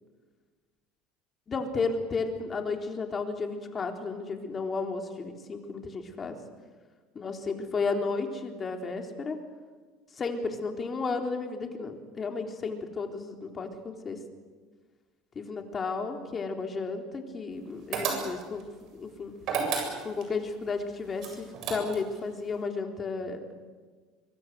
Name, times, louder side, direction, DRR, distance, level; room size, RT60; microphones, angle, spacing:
voice 1, 1.5-6.4 7.2-9.4 10.2-14.2 15.4-18.7 18.9-19.3 20.0-23.4, left 4 dB, 30° left, 4 dB, 3.8 m, -33 dB
sound 1, 17.9-18.6 19.4-20.3 21.2-22.2, right 5 dB, 55° right, 7.8 m, -31 dB
24.5 x 23.5 x 8.0 m, 1.4 s
supercardioid pair, 110°, 0 cm